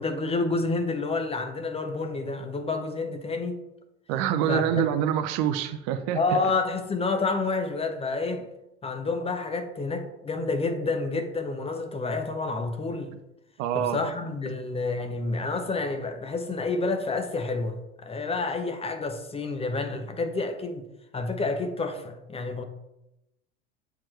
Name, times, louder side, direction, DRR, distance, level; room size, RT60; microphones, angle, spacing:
voice 1, 0.0-3.6 4.5-4.8 6.1-8.5 8.8-13.1 13.7-20.9 21.1-22.6, left 3 dB, 15° left, 0.7 m, -29 dB
voice 2, 4.1-6.4 13.6-14.0, right 10 dB, 50° right, 0.6 m, -26 dB
8.0 x 4.3 x 3.1 m
figure-of-eight pair, 75°, 35 cm